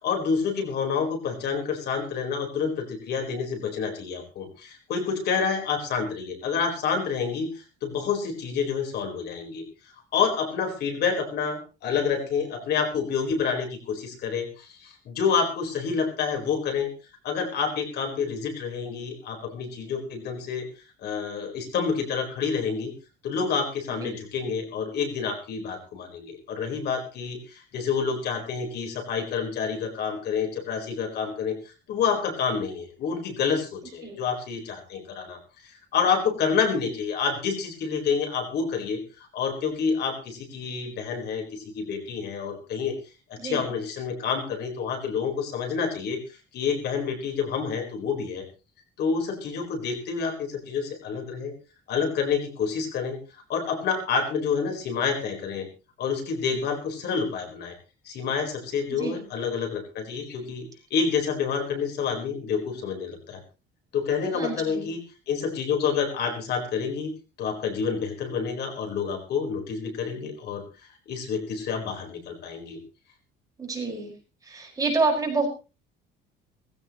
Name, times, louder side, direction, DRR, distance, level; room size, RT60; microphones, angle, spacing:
voice 1, 0.0-9.6 10.1-16.9 17.2-20.6 21.0-22.9 23.2-43.0 43.3-46.2 46.5-48.5 49.0-51.5 51.9-53.2 53.5-55.7 56.0-57.7 58.0-63.4 63.9-65.0 65.3-67.1 67.4-70.6 71.1-72.8, left 6 dB, 55° left, 4 dB, 4.4 m, -28 dB
voice 2, 43.4-43.7 58.9-59.2 64.3-64.9 73.6-74.1 74.4-75.5, right 3 dB, 15° right, 1 dB, 5.2 m, -28 dB
18.5 x 16.0 x 3.1 m, 0.31 s
cardioid pair, 155°, 20 cm